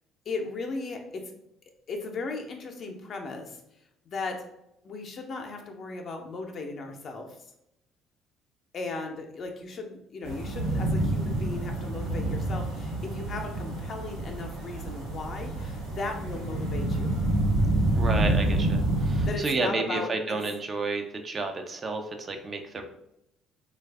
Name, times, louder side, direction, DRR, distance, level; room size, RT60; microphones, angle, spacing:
voice 1, 0.3-1.3 1.9-3.6 4.1-4.4 4.8-7.4 8.7-17.1 19.3-20.4 22.8-22.9, left 3 dB, 50° left, 3 dB, 0.6 m, -36 dB
sound 1, 10.2-19.3, right 1 dB, 90° right, 1.0 m, -28 dB
voice 2, 17.9-22.8, right 3 dB, 40° right, 5 dB, 0.5 m, -31 dB
3.2 x 2.3 x 3.4 m, 0.82 s
hypercardioid pair, 55°, 0 cm